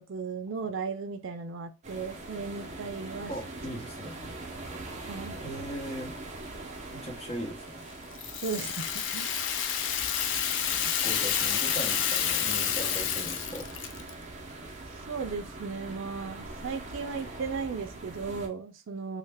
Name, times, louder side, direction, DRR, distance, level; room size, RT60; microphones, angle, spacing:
voice 1, 0.0-3.3 5.1-5.4 8.4-9.3 15.1-19.2, right 5 dB, 80° right, 7 dB, 0.4 m, -36 dB
sound 1, 1.8-18.5, right 2 dB, 35° right, 0.5 m, -42 dB
voice 2, 3.3-4.2 5.4-6.2 6.9-7.9 10.8-13.7, equal, 30° left, 1 dB, 0.8 m, -39 dB
Rattle (instrument), 8.1-14.1, left 8 dB, 65° left, 0.4 m, -29 dB
sound 2, 10.3-17.8, right 1 dB, 5° left, 1.0 m, -55 dB
3.2 x 2.1 x 3.3 m, 0.29 s
head